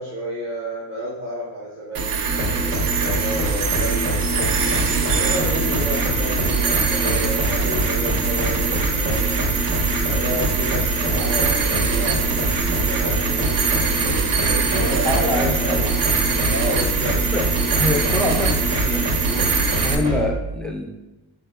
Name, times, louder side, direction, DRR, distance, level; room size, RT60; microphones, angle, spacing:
voice 1, 0.0-4.6 5.1-9.4 10.1-13.9 14.5-16.0 16.5-17.2, equal, 30° right, -7 dB, 1.0 m, -30 dB
sound 1, 1.9-19.9, right 5 dB, 50° right, 0.5 m, -23 dB
sound 2, 2.3-20.3, right 1 dB, 75° right, 1.3 m, -25 dB
voice 2, 15.0-15.9 17.0-17.4 17.8-19.5 19.8-20.8, left 2 dB, ahead, 1 dB, 0.4 m, -26 dB
4.4 x 3.5 x 2.3 m, 1.0 s
cardioid pair, 115°, 47 cm